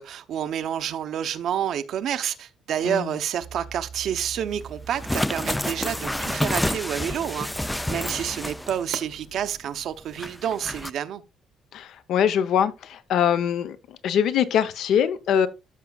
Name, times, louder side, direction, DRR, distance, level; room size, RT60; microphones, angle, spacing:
voice 1, 0.0-7.5 7.9-11.2, right 9 dB, 65° right, 0.7 m, -29 dB
sound 1, 3.4-10.4, right 7 dB, 80° right, 1.1 m, -43 dB
sound 2, 4.9-8.9 9.2-9.3 10.2-10.9, left 1 dB, 5° left, 0.3 m, -29 dB
voice 2, 11.7-15.5, left 8 dB, 70° left, 0.8 m, -23 dB
13.0 x 6.0 x 2.3 m
cardioid pair, 135°, 0 cm